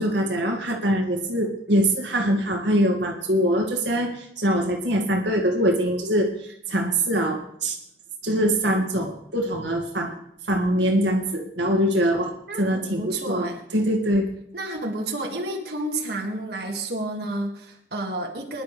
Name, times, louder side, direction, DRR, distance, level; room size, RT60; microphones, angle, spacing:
voice 1, 0.0-7.8 8.2-10.1 10.5-12.3 12.6-14.3, equal, 75° right, 0 dB, 2.0 m, -23 dB
voice 2, 12.5-13.6 14.5-18.6, right 2 dB, 60° right, 0 dB, 2.0 m, -30 dB
23.5 x 11.0 x 3.4 m, 0.72 s
head